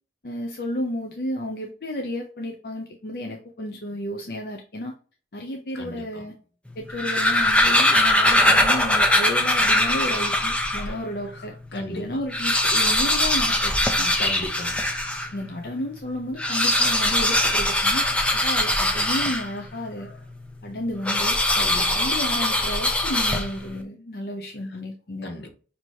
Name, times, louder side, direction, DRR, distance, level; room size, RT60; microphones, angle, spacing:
voice 1, 0.2-4.9 5.3-6.3 6.8-14.1 15.3-18.1 18.3-20.1 20.6-21.4 21.7-25.3, left 1 dB, 60° left, 0.6 m, -32 dB
sound 1, 6.8-10.9 11.5-11.6 11.8-11.9 12.2-15.3 16.3-19.7 21.0-23.7, left 1 dB, 5° left, 0.5 m, -21 dB
voice 2, 11.7-12.1 14.2-14.9 21.5-22.0 25.2-25.5, left 1 dB, 80° left, 1.1 m, -35 dB
6.2 x 2.9 x 2.7 m
head